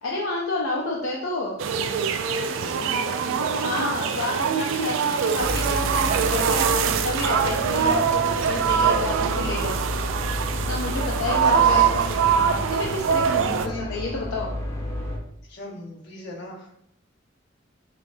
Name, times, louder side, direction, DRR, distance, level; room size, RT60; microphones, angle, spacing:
voice 1, 0.0-1.6 3.6-9.7 10.7-14.5, left 2 dB, 85° left, -2 dB, 0.5 m, -30 dB
sound 1, 1.6-13.7, right 7 dB, 75° right, 0.3 m, -23 dB
voice 2, 2.6-3.5 11.2-11.8 13.3-13.9 15.5-16.8, left 1 dB, 60° left, -3 dB, 1.0 m, -38 dB
sound 2, 5.4-15.2, left 1 dB, 15° left, 0.6 m, -31 dB
5.5 x 2.3 x 2.6 m, 0.74 s
head